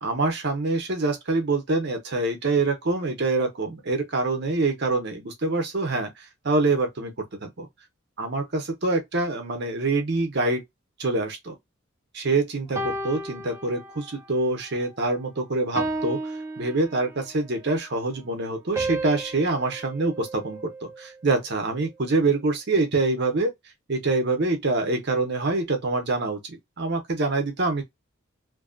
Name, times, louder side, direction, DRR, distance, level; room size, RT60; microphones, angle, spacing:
voice 1, 0.0-7.1 7.4-7.7 8.2-10.6 11.0-11.5 12.1-16.2 16.6-23.5 23.9-27.8, right 3 dB, 50° right, 0.7 m, -25 dB
sound 1, 12.8-14.3 14.8-15.1 15.8-17.4 18.8-21.1, right 2 dB, 10° right, 0.4 m, -33 dB
2.6 x 2.3 x 2.4 m
head